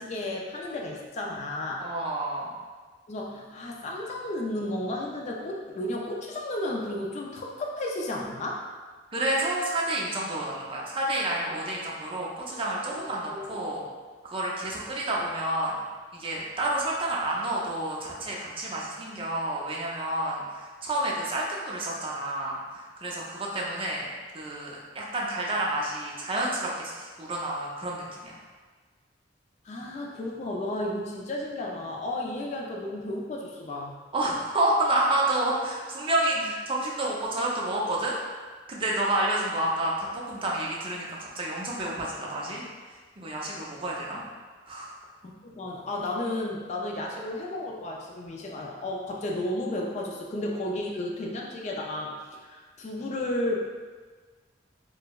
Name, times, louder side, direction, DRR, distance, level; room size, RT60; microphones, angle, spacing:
voice 1, 0.0-1.9 3.1-8.7 12.9-13.6 29.6-34.0 45.2-53.7, left 1 dB, 35° left, -1 dB, 0.4 m, -33 dB
voice 2, 1.8-2.5 9.1-13.8 14.2-15.7 16.1-22.6 23.0-24.1 24.3-28.4 34.1-38.2 38.7-42.6 43.2-44.2 44.7-44.9, right 1 dB, 30° right, -3 dB, 0.5 m, -29 dB
4.4 x 2.1 x 2.3 m, 1.4 s
head